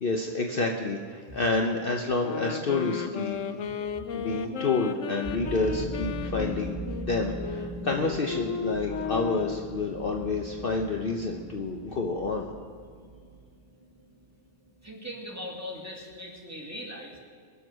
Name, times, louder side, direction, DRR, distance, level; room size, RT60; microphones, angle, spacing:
voice 1, 0.0-3.4 4.1-12.5, left 3 dB, 50° left, 2 dB, 1.1 m, -29 dB
sound 1, 2.2-9.7, left 8 dB, 75° left, 1.1 m, -35 dB
sound 2, 5.2-15.5, right 2 dB, 45° right, 2.6 m, -40 dB
voice 2, 14.8-17.2, equal, 10° right, -2 dB, 2.4 m, -39 dB
22.5 x 7.7 x 6.3 m, 2.1 s
omnidirectional pair, 1.3 m